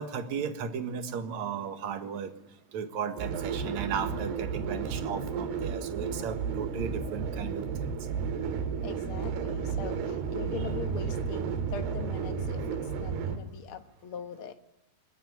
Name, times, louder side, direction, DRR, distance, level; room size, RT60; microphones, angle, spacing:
voice 1, 0.0-2.3 2.7-7.6 10.6-10.7, right 7 dB, 55° right, 7 dB, 2.7 m, -35 dB
sound 1, 3.2-13.4, right 6 dB, 75° right, 3.8 m, -32 dB
voice 2, 8.8-14.5, left 7 dB, 80° left, 7 dB, 1.2 m, -41 dB
22.0 x 21.0 x 9.8 m, 0.83 s
omnidirectional pair, 4.6 m